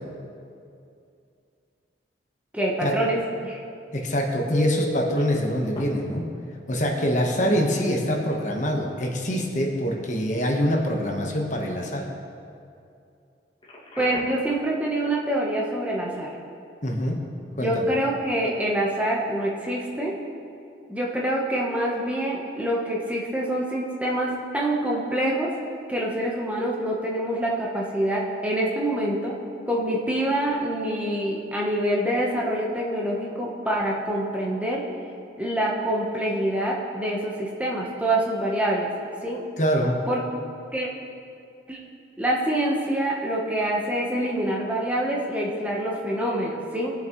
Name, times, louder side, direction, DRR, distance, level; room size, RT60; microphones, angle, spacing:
voice 1, 2.5-3.6 14.0-16.3 17.6-20.1 20.9-25.5 25.9-29.4 29.7-34.8 35.4-38.9 39.2-39.4 40.1-40.2 40.7-40.9 41.7-41.8 42.2-46.9, right 1 dB, 10° right, -3 dB, 1.0 m, -26 dB
voice 2, 3.9-6.3 6.7-12.0 16.8-17.2 17.6-17.8 39.6-40.0, equal, 45° left, 0 dB, 1.2 m, -24 dB
Telephone, 4.5-5.2 5.7-5.8 7.6-7.7 8.2-8.3 13.6-14.5 21.6-21.8, equal, 25° left, 2.0 m, -32 dB
19.5 x 7.2 x 3.1 m, 2.5 s
head